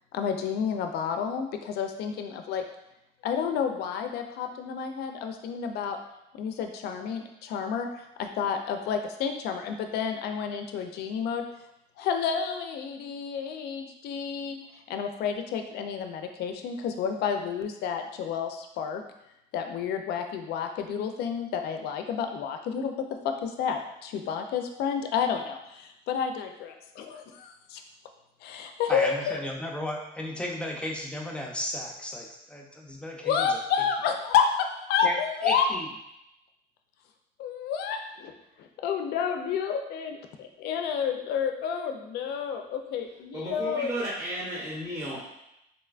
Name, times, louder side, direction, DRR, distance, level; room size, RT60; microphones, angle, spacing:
voice 1, 0.1-2.6 3.2-6.0 6.4-7.9 8.2-11.4 12.0-14.6 14.9-19.0 19.5-22.9 23.2-27.8 28.4-29.4 33.2-35.6 37.4-38.3 38.6-43.9, left 7 dB, 75° left, 5 dB, 0.4 m, -30 dB
voice 2, 28.9-33.6 35.0-35.2 35.4-35.9, left 1 dB, 5° left, -1 dB, 0.5 m, -34 dB
voice 3, 43.3-45.2, right 1 dB, 20° right, -7 dB, 0.8 m, -33 dB
3.9 x 2.2 x 2.4 m, 0.85 s
cardioid pair, 110°, 17 cm